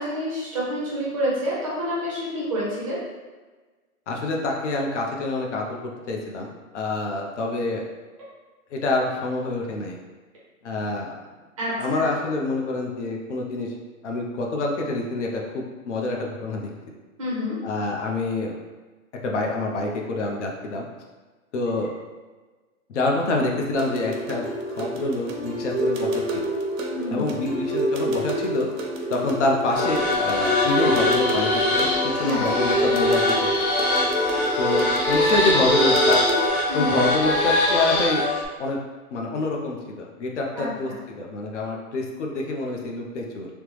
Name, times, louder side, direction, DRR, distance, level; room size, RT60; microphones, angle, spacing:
voice 1, 0.0-3.0 11.6-12.1 17.2-17.6 26.9-27.2 32.2-32.4 36.7-37.0 40.6-40.7, equal, 25° right, -7 dB, 0.5 m, -28 dB
voice 2, 4.1-7.8 8.7-10.0 10.6-11.1 11.8-13.7 14.0-16.9 17.6-18.5 19.2-20.9 21.5-21.9 22.9-24.5 24.8-26.4 27.1-28.7 29.1-31.9 32.2-33.2 34.6-36.2 36.7-38.3 38.6-38.8 39.1-43.5, left 2 dB, 60° left, 0 dB, 0.6 m, -26 dB
sound 1, 23.7-36.5, right 1 dB, 70° right, 0.7 m, -28 dB
sound 2, 29.7-38.5, left 2 dB, 90° left, 0.9 m, -22 dB
3.2 x 2.0 x 3.1 m, 1.3 s
hypercardioid pair, 155°, 42 cm